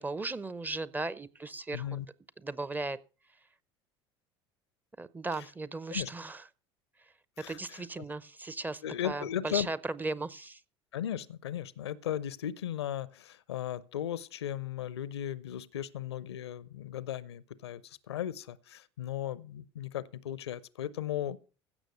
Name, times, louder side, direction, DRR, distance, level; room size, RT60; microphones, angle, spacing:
voice 1, 0.0-2.0 2.4-3.0 5.0-6.4 7.5-10.6, right 3 dB, 15° right, 0.6 m, -37 dB
voice 2, 1.7-2.1 5.4-5.5 5.9-6.1 7.4-8.0 8.8-9.7 10.9-21.4, left 11 dB, 75° left, 0.6 m, -36 dB
16.0 x 6.4 x 5.1 m
figure-of-eight pair, 65°, 14 cm